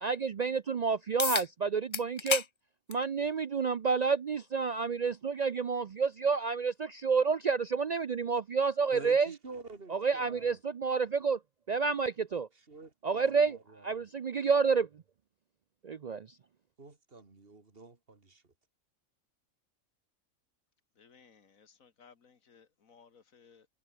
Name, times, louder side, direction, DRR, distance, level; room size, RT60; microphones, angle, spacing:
voice 1, 0.0-2.4 2.9-9.3 9.9-11.4 11.7-12.5 13.0-13.6 13.8-14.9 15.8-16.3, right 5 dB, 70° right, 0.4 m, -29 dB
sound 1, 1.2-1.5 1.9-2.5 2.9-3.0 4.1-4.2 9.1-9.2, left 5 dB, 45° left, 0.4 m, -31 dB
voice 2, 8.9-10.6 12.5-14.1 16.8-18.4, right 3 dB, 45° right, 2.8 m, -49 dB
voice 3, 21.0-23.7, left 6 dB, 80° left, 2.2 m, -60 dB
omnidirectional pair, 1.4 m